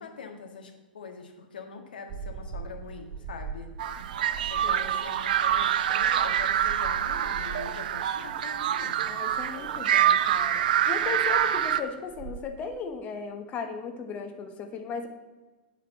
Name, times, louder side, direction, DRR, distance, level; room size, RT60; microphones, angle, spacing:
voice 1, 0.0-3.7 4.5-9.0, left 5 dB, 75° left, 4 dB, 1.6 m, -43 dB
sound 1, 2.1-12.4, right 5 dB, 35° right, 1.1 m, -43 dB
sound 2, 3.8-11.8, right 10 dB, 65° right, 0.5 m, -26 dB
voice 2, 4.6-4.9 9.1-15.1, left 5 dB, 30° left, 6 dB, 1.1 m, -36 dB
8.5 x 5.0 x 7.3 m, 1.2 s
figure-of-eight pair, 100°, 5 cm